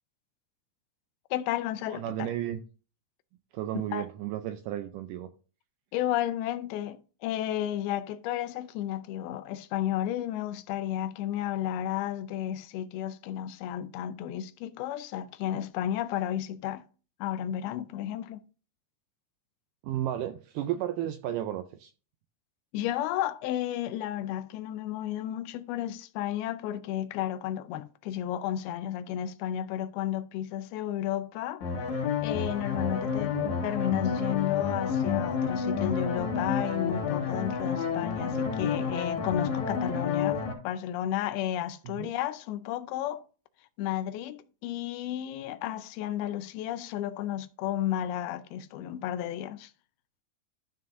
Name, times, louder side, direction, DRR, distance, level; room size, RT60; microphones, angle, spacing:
voice 1, 1.3-2.3 3.9-4.1 5.9-16.8 17.2-18.4 22.7-33.4 33.6-43.2 43.8-49.7, left 11 dB, 90° left, 2.6 m, -33 dB
voice 2, 1.9-2.6 3.5-5.3 19.8-21.9 33.3-33.6 41.9-42.1, right 12 dB, 85° right, 1.9 m, -33 dB
sound 1, 31.6-40.5, left 6 dB, 60° left, 2.7 m, -29 dB
13.0 x 5.9 x 2.6 m
omnidirectional pair, 4.3 m